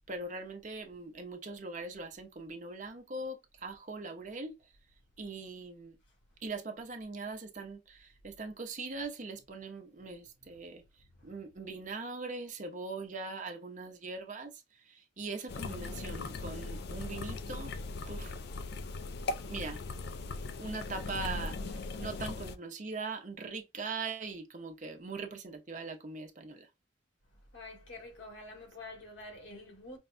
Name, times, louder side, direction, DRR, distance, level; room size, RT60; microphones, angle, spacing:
voice 1, 0.0-4.7 5.2-6.0 6.4-17.7 18.1-18.4 19.4-19.8 20.6-26.7, right 3 dB, 40° right, 0.8 m, -41 dB
sound 1, 15.5-22.5, left 3 dB, 55° left, 0.4 m, -39 dB
voice 2, 27.5-30.0, left 2 dB, 80° left, 1.5 m, -47 dB
5.3 x 2.2 x 2.5 m
head